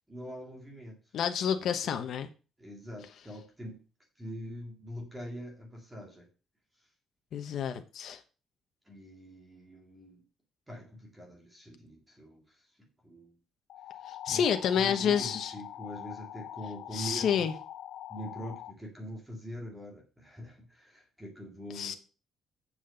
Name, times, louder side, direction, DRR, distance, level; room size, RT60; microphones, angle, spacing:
voice 1, 0.1-1.0 1.5-1.9 2.6-3.8 4.2-6.3 8.9-10.2 10.7-12.4 13.0-13.3 14.3-14.4 14.7-17.5 18.1-22.0, equal, 10° right, 0 dB, 2.2 m, -43 dB
voice 2, 1.1-2.3 7.3-8.2 14.1-15.5 16.9-17.5 21.7-21.9, left 8 dB, 55° left, 7 dB, 1.0 m, -29 dB
sound 1, 13.7-18.7, left 11 dB, 80° left, 0.7 m, -44 dB
7.4 x 6.4 x 6.6 m, 0.34 s
cardioid pair, 170°, 0 cm